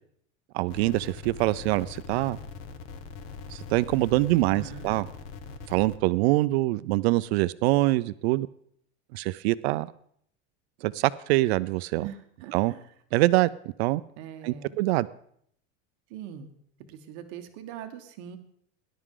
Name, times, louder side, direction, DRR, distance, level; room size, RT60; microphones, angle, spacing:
voice 1, 0.5-2.4 3.5-5.1 5.7-8.5 9.1-9.9 10.8-12.0 12.5-12.7 13.1-13.5 13.8-14.0 14.4-15.1, right 19 dB, 65° right, 15 dB, 0.5 m, -24 dB
sound 1, 0.7-6.0, left 5 dB, 50° left, 1.3 m, -42 dB
voice 2, 4.2-5.0 12.0-12.9 14.2-14.8 16.1-16.5 16.9-18.4, right 8 dB, 50° right, 5 dB, 1.2 m, -42 dB
18.5 x 11.0 x 3.8 m, 0.66 s
supercardioid pair, 170°, 35 cm